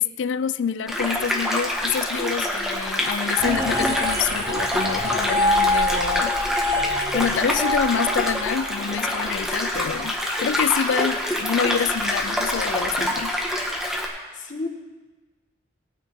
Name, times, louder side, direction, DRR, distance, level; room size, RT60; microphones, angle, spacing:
voice 1, 0.0-6.4 7.1-13.4, left 7 dB, 90° left, 0.4 m, -26 dB
sound 1, 0.9-14.1, equal, 5° right, 1.5 m, -26 dB
sound 2, 3.4-8.8, left 1 dB, 20° right, 1.0 m, -25 dB
voice 2, 13.9-14.7, left 3 dB, 45° left, 1.4 m, -34 dB
19.0 x 9.2 x 3.7 m
head